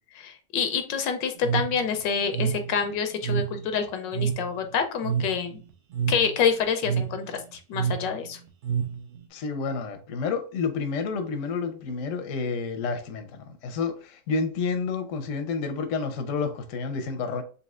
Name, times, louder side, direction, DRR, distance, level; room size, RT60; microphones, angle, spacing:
voice 1, 0.1-5.6 6.1-8.4, left 6 dB, 80° left, 1.3 m, -27 dB
sound 1, 1.4-9.3, right 8 dB, 75° right, 0.6 m, -30 dB
voice 2, 9.3-17.4, left 4 dB, 55° left, 0.9 m, -30 dB
4.1 x 3.5 x 2.4 m
omnidirectional pair, 2.0 m